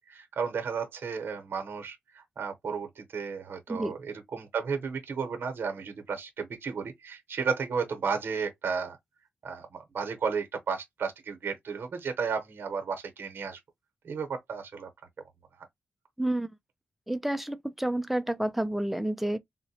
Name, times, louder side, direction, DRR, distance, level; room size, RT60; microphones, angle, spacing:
voice 1, 0.0-9.0 9.4-13.6 14.0-14.9 15.6-15.7, right 5 dB, 65° right, 0.8 m, -33 dB
voice 2, 16.2-16.5 17.1-19.4, right 1 dB, 5° right, 0.3 m, -29 dB
3.8 x 2.1 x 2.7 m
wide cardioid pair, 135°, 4 cm